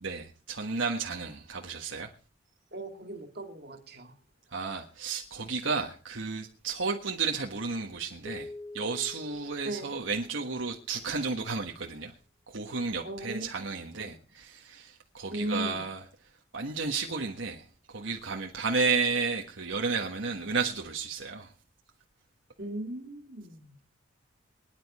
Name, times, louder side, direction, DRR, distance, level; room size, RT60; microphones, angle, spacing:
voice 1, 0.0-2.1 4.5-12.1 12.5-16.0 16.5-21.5, right 4 dB, 75° right, 1.4 m, -32 dB
voice 2, 2.7-4.1 9.6-9.9 13.0-14.2 15.3-15.9 22.6-23.8, right 1 dB, 55° right, 2.3 m, -38 dB
sound 1, 8.2-10.8, left 2 dB, 20° left, 0.9 m, -46 dB
24.0 x 10.5 x 4.3 m
head